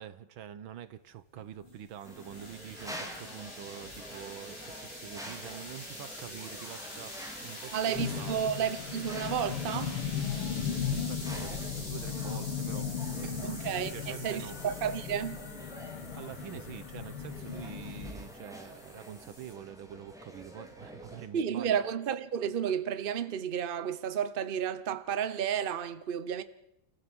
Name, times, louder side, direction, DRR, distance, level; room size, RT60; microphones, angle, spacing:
voice 1, 0.0-8.4 10.9-14.6 16.2-21.8, right 9 dB, 70° right, 1.7 m, -46 dB
sound 1, 1.3-19.5, left 1 dB, 25° left, 6.1 m, -46 dB
sound 2, 2.0-21.3, equal, ahead, 2.9 m, -47 dB
voice 2, 7.7-10.0 13.4-15.4 21.3-26.4, right 8 dB, 90° right, 0.4 m, -32 dB
sound 3, 8.0-18.1, left 8 dB, 85° left, 2.2 m, -37 dB
29.5 x 15.0 x 6.2 m
omnidirectional pair, 2.3 m